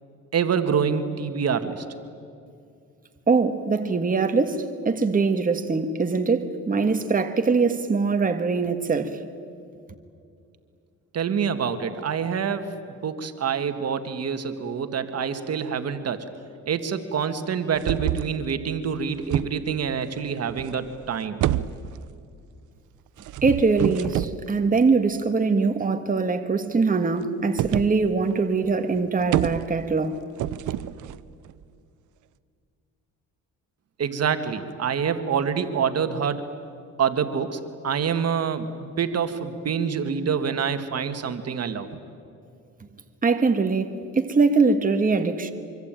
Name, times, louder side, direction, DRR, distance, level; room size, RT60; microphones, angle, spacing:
voice 1, 0.3-1.9 11.1-12.7 13.0-16.2 16.7-21.4 34.0-36.4 37.0-41.9, right 7 dB, 55° right, 1.8 m, -26 dB
voice 2, 3.3-9.2 23.4-30.2 43.2-45.5, right 4 dB, 25° right, 1.7 m, -22 dB
sound 1, 17.8-18.4 18.8-19.9 20.5-21.1 21.4-22.2 23.2-24.4 27.6-28.0 28.3-28.4 28.6-28.7 29.0-30.0 30.4-31.6, right 13 dB, 75° right, 0.8 m, -28 dB
25.0 x 24.5 x 9.0 m
cardioid pair, 90°, 30 cm